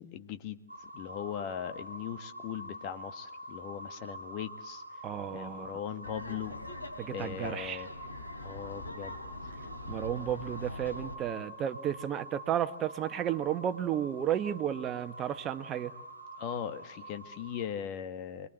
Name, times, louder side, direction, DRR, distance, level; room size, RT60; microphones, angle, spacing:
voice 1, 0.0-4.8 5.3-6.6 7.1-7.9 8.4-9.2 16.4-18.5, left 8 dB, 40° left, 9 dB, 1.8 m, -39 dB
sound 1, 0.7-17.6, equal, 90° right, 1.6 m, -46 dB
voice 2, 5.0-5.7 7.0-7.8 9.9-15.9, right 10 dB, 25° right, 9 dB, 1.4 m, -33 dB
Laughter, 6.0-11.1, left 2 dB, 85° left, 4.0 m, -43 dB
29.5 x 22.0 x 8.1 m, 0.89 s
figure-of-eight pair, 110°, 0 cm